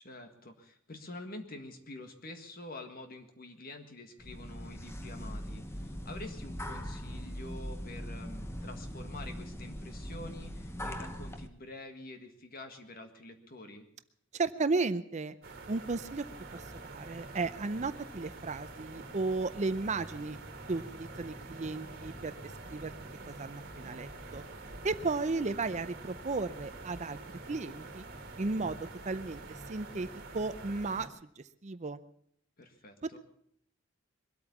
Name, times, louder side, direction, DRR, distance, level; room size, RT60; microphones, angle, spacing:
voice 1, 0.0-13.9 32.6-33.2, left 2 dB, 45° left, 6 dB, 1.8 m, -47 dB
sound 1, 4.2-11.5, equal, 15° left, 1.0 m, -41 dB
voice 2, 14.3-15.4 15.7-16.2 16.5-20.4 20.7-22.9 23.3-24.4 24.8-27.2 27.5-28.0 28.4-28.8 29.0-30.1 30.3-32.0 33.0-33.2, right 3 dB, 35° right, 13 dB, 0.5 m, -34 dB
sound 2, 15.4-31.1, right 2 dB, 50° right, 2.1 m, -46 dB
22.5 x 8.6 x 7.1 m, 0.69 s
head